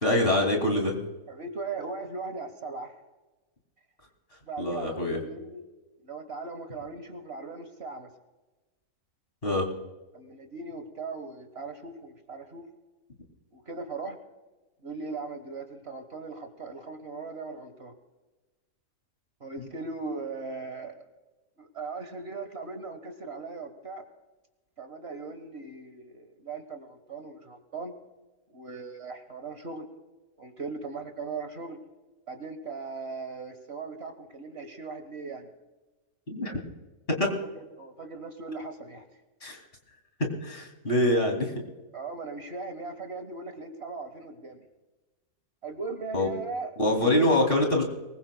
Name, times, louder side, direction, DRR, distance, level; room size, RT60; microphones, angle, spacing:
voice 1, 0.0-1.0 4.6-5.2 9.4-9.7 19.6-19.7 36.3-36.6 37.1-37.3 39.4-39.6 40.2-41.5 46.1-46.3 46.8-47.8, left 1 dB, 35° left, 1 dB, 2.8 m, -25 dB
voice 2, 1.3-2.9 4.4-5.7 6.0-8.1 10.1-12.6 13.5-14.2 14.8-17.9 19.4-21.0 21.6-24.0 24.8-27.9 28.5-29.9 30.4-31.8 32.3-35.5 37.2-39.0 41.1-41.2 41.9-44.7 45.6-46.7 47.0-47.4, right 4 dB, 45° right, 7 dB, 1.5 m, -39 dB
23.5 x 21.0 x 2.2 m, 1.2 s
omnidirectional pair, 1.6 m